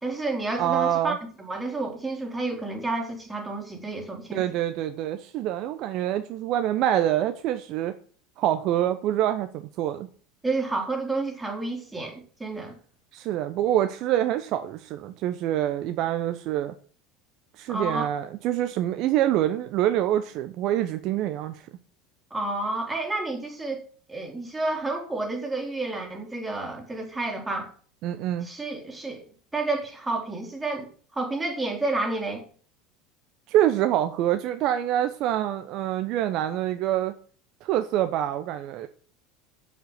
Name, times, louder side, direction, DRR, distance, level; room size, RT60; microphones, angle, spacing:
voice 1, 0.0-4.5 10.4-12.8 17.7-18.1 22.3-27.7 28.4-29.3 29.5-32.5, right 2 dB, 10° right, 1 dB, 3.8 m, -30 dB
voice 2, 0.6-1.2 4.3-7.9 8.4-10.1 13.1-16.7 17.6-21.6 28.0-28.5 33.5-37.1 37.6-38.9, right 12 dB, 55° right, 9 dB, 0.8 m, -26 dB
7.9 x 7.7 x 7.9 m, 0.43 s
hypercardioid pair, 75°, 0 cm